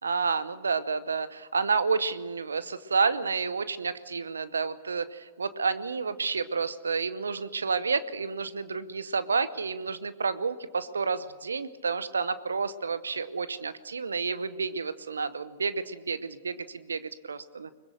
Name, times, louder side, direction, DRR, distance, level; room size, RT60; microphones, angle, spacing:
voice 1, 0.0-17.7, right 5 dB, 85° right, 15 dB, 0.9 m, -30 dB
23.0 x 21.0 x 6.5 m, 1.3 s
hypercardioid pair, 105°, 0 cm